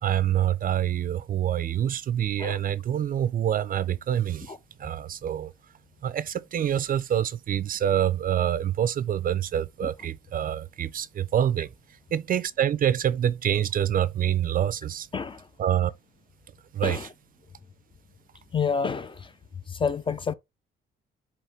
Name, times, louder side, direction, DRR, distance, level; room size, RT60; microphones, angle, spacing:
voice 1, 0.0-4.5 4.8-5.5 6.0-11.7 12.1-15.1 15.6-15.9 16.7-17.1, right 10 dB, 45° right, 0.4 m, -26 dB
voice 2, 15.1-15.4 16.8-17.1 18.5-19.3 19.7-20.3, left 5 dB, 25° left, 0.4 m, -28 dB
4.9 x 2.9 x 2.8 m
cardioid pair, 90°, 20 cm